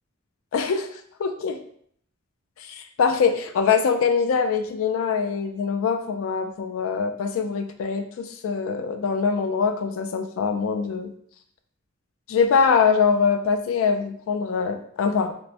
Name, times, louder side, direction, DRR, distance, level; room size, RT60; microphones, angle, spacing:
voice 1, 0.5-1.6 2.6-11.1 12.3-15.3, left 5 dB, 85° left, 7 dB, 0.3 m, -23 dB
4.4 x 2.1 x 2.5 m, 0.63 s
head